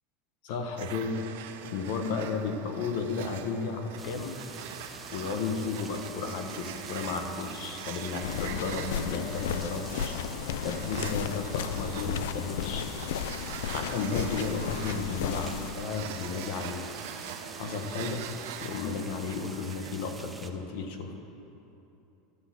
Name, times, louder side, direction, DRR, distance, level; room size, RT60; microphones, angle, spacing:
voice 1, 0.4-1.2 1.7-4.4 5.1-10.1 10.6-12.8 13.7-16.8 17.5-18.2 18.6-21.1, left 4 dB, 55° left, 5 dB, 1.1 m, -33 dB
sound 1, 0.8-20.1, right 9 dB, 70° right, 0.6 m, -43 dB
sound 2, 4.0-20.5, right 3 dB, 10° right, 0.5 m, -46 dB
sound 3, 8.2-15.7, left 8 dB, 85° left, 0.4 m, -34 dB
12.5 x 6.1 x 7.4 m, 2.9 s
supercardioid pair, 175°, 0 cm